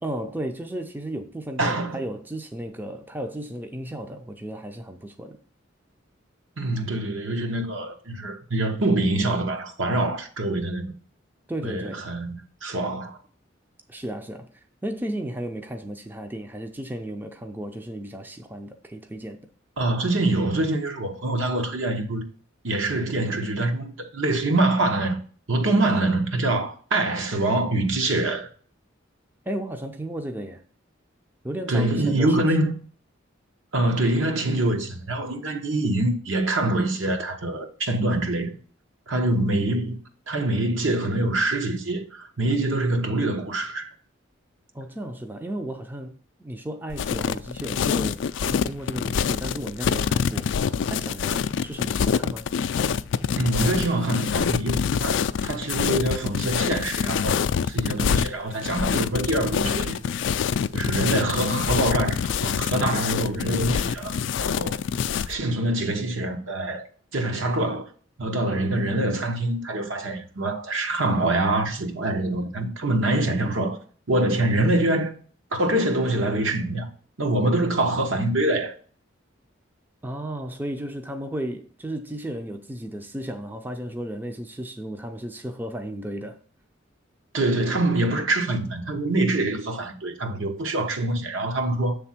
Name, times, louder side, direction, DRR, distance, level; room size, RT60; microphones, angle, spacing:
voice 1, 0.0-5.4 11.5-12.0 13.9-19.4 29.5-30.6 31.4-32.6 44.7-50.5 50.9-52.5 80.0-86.4, right 1 dB, 10° right, 0.4 m, -34 dB
voice 2, 1.6-2.0 6.6-10.9 11.6-13.2 19.8-22.2 22.6-25.2 25.5-28.5 31.7-32.7 33.7-38.5 39.1-40.0 40.3-43.9 53.4-60.0 60.7-64.8 65.3-66.9 67.1-67.9 68.2-73.8 74.1-75.1 75.5-76.9 77.2-78.8 87.3-92.0, right 2 dB, 75° right, 1.1 m, -25 dB
sound 1, 46.9-65.4, left 7 dB, 65° left, 0.3 m, -25 dB
7.3 x 3.4 x 5.8 m
head